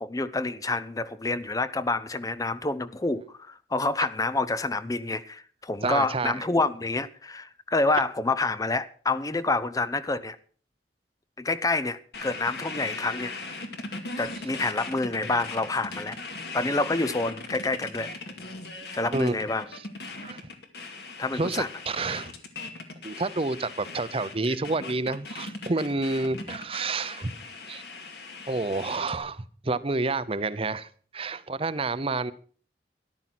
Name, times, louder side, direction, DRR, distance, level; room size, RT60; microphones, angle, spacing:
voice 1, 0.0-10.4 11.4-13.3 14.2-16.2 16.5-18.1 18.9-19.7 21.2-21.7, left 3 dB, 20° left, 0.5 m, -28 dB
voice 2, 5.8-6.5 19.1-19.4 20.2-20.4 21.3-22.3 23.0-27.3 27.7-27.8 28.5-32.3, right 3 dB, 30° right, 0.7 m, -29 dB
sound 1, 12.1-29.2, left 3 dB, 65° left, 2.3 m, -39 dB
13.5 x 11.5 x 5.9 m
head